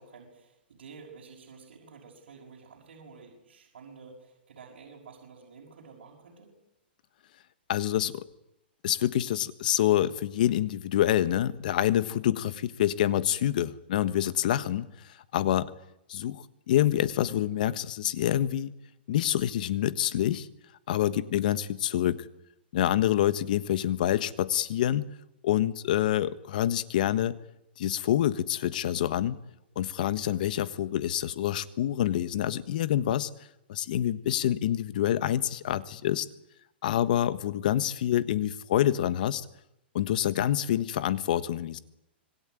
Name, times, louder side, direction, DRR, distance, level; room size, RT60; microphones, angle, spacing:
voice 1, 0.0-6.5, right 5 dB, 85° right, -2 dB, 6.1 m, -50 dB
voice 2, 7.7-8.2 8.8-14.9 15.3-15.7 16.1-18.7 19.1-20.5 20.9-22.3 22.7-25.1 25.4-27.4 27.8-29.4 29.7-33.3 33.7-36.3 36.8-39.4 39.9-41.8, left 12 dB, 50° left, 15 dB, 1.4 m, -27 dB
26.0 x 21.5 x 9.2 m, 0.82 s
hypercardioid pair, 170°, 6 cm